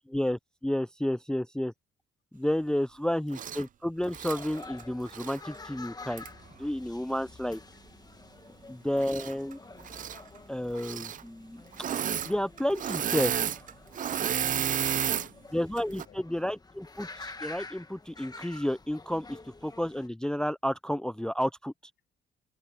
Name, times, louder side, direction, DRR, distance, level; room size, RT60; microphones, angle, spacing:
voice 1, 0.1-1.7 2.3-6.2 6.6-7.6 8.7-9.6 10.5-11.6 12.2-13.3 15.5-21.7, left 1 dB, 5° left, 0.6 m, -31 dB
voice 2, 2.7-3.1 8.4-8.9 14.3-16.5, left 10 dB, 65° left, 6.2 m, -60 dB
Engine / Mechanisms, 3.3-3.6 4.1-5.4 6.2-6.3 9.0-9.5 9.8-10.2 10.8-11.2 11.7-12.3 12.6-15.3 15.8-16.1, right 9 dB, 40° right, 0.4 m, -32 dB
sound 1, 4.0-20.1, left 3 dB, 20° left, 1.5 m, -49 dB
cardioid pair, 90°, 20 cm